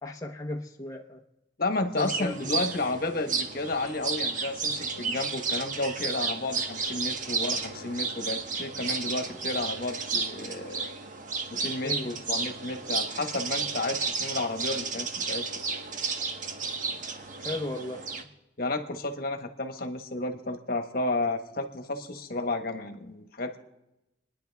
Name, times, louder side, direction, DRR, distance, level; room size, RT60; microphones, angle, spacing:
voice 1, 0.0-1.2 1.9-2.5 11.8-12.2 17.4-18.1, left 2 dB, 20° left, 0.9 m, -35 dB
voice 2, 1.6-10.9 11.5-15.4 18.6-23.6, left 2 dB, 55° left, 1.3 m, -32 dB
sound 1, 2.0-18.2, right 4 dB, 45° right, 1.2 m, -32 dB
29.0 x 10.5 x 3.5 m
head